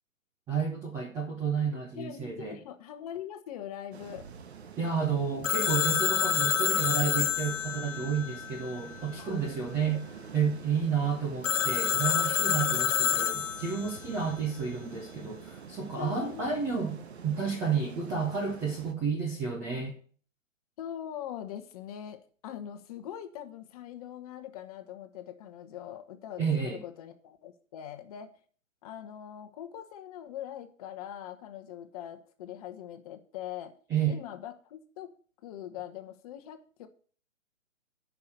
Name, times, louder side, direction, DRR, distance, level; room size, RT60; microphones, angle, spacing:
voice 1, 0.5-2.6 4.8-10.1 10.3-17.0 17.2-19.9 26.4-26.8 33.9-34.2, right 6 dB, 5° right, -1 dB, 0.6 m, -31 dB
voice 2, 1.9-4.3 9.2-10.2 12.5-12.8 15.9-16.5 20.8-28.3 28.8-33.7 34.0-35.1 35.4-36.9, left 10 dB, 30° left, 8 dB, 1.1 m, -42 dB
sound 1, 3.9-18.9, right 6 dB, 55° right, 1.2 m, -47 dB
Telephone, 5.4-9.1 11.4-14.0, left 9 dB, 65° left, 1.1 m, -28 dB
9.6 x 5.8 x 8.1 m, 0.44 s
figure-of-eight pair, 140°, 40 cm